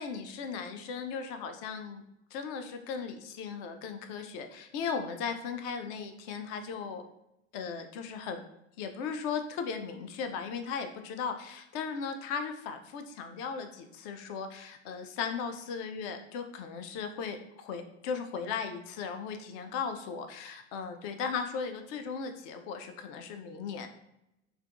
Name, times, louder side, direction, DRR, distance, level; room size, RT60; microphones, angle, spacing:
voice 1, 0.0-2.0 2.3-7.0 7.5-8.4 8.8-23.9, left 6 dB, 40° left, 7 dB, 0.4 m, -37 dB
3.3 x 2.2 x 2.5 m, 0.84 s
figure-of-eight pair, 75°, 39 cm